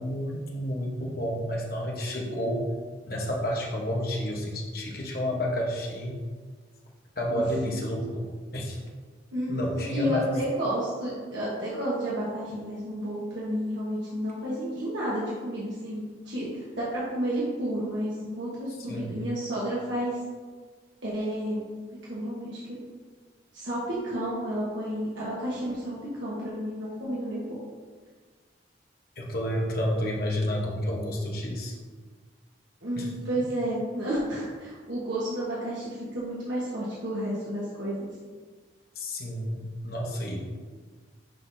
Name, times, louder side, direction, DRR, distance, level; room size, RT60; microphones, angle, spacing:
voice 1, 0.0-2.7 3.0-6.2 7.2-8.8 9.5-10.3 18.9-19.2 29.2-31.8 33.0-33.1 39.0-40.5, equal, 50° left, -2 dB, 1.1 m, -30 dB
voice 2, 9.3-20.2 21.0-21.6 22.1-22.8 23.5-27.4 32.8-38.1, equal, 85° right, -8 dB, 1.4 m, -31 dB
10.5 x 3.9 x 2.7 m, 1.5 s
head